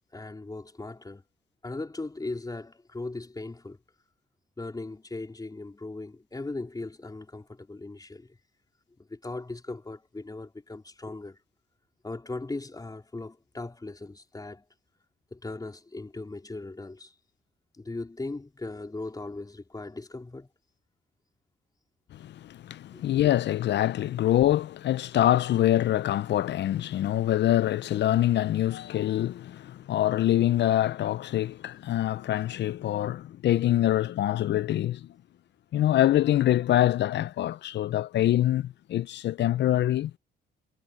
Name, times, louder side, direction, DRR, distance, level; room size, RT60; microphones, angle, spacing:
voice 1, 0.1-1.2 1.6-3.8 4.6-8.4 9.0-11.4 12.0-14.6 15.3-17.2 17.7-20.5 22.9-23.0, left 2 dB, 20° left, 4.2 m, -38 dB
voice 2, 22.1-35.1 35.7-40.1, left 13 dB, 60° left, 0.5 m, -25 dB
cardioid pair, 90°, 20 cm